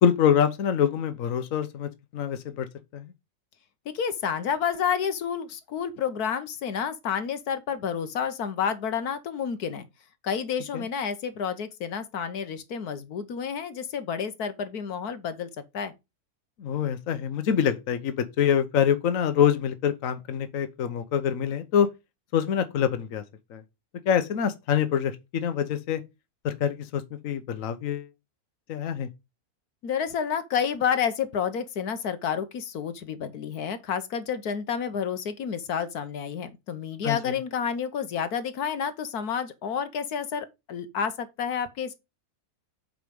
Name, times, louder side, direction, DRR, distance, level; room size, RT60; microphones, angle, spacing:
voice 1, 0.0-2.7 2.9-3.1 10.7-10.8 16.6-21.9 22.3-23.2 23.5-23.6 24.1-26.0 26.4-28.1 28.7-29.1 37.0-37.4, left 8 dB, 65° left, 1.3 m, -25 dB
voice 2, 3.9-9.9 10.2-15.5 15.7-15.9 29.8-42.0, left 7 dB, 85° left, 1.5 m, -30 dB
7.9 x 5.2 x 5.1 m
omnidirectional pair, 1.6 m